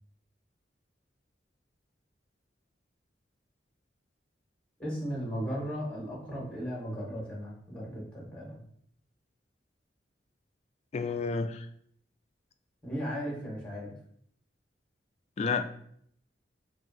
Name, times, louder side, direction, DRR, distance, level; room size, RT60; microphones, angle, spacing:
voice 1, 4.8-8.6 12.8-13.9, equal, 5° left, -4 dB, 1.5 m, -36 dB
voice 2, 10.9-11.7 15.4-15.7, left 4 dB, 40° left, 8 dB, 0.3 m, -30 dB
5.8 x 2.5 x 2.7 m, 0.66 s
head